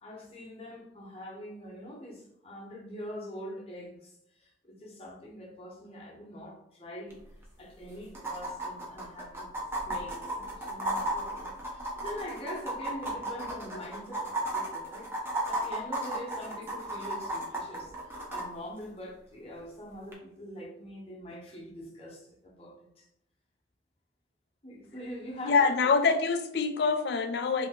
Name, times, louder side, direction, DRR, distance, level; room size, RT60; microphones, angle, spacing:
voice 1, 0.0-7.2 7.6-23.0 24.6-25.7, equal, 30° left, -2 dB, 0.8 m, -44 dB
sound 1, 7.1-7.2 7.4-7.5 8.1-18.4 20.1-20.2, right 1 dB, 15° right, 0.5 m, -34 dB
voice 2, 25.5-27.7, left 4 dB, 65° left, 8 dB, 0.3 m, -25 dB
2.6 x 2.6 x 3.6 m, 0.78 s
head